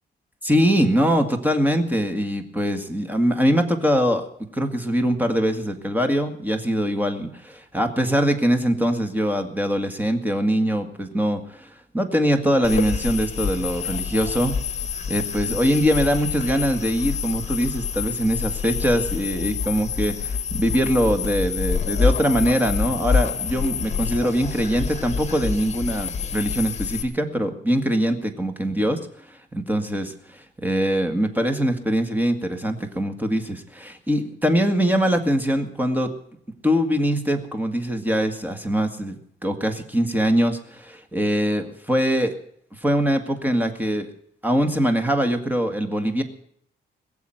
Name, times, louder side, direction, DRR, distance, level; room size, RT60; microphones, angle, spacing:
voice 1, 0.4-4.2 4.5-11.7 11.9-14.6 15.1-29.0 29.3-36.1 36.6-39.2 39.4-42.3 42.8-44.1 44.4-46.2, equal, 10° right, 6 dB, 1.9 m, -22 dB
sound 1, 12.6-27.0, left 6 dB, 40° left, 1.8 m, -27 dB
22.0 x 7.3 x 9.0 m, 0.68 s
wide cardioid pair, 135°, 18 cm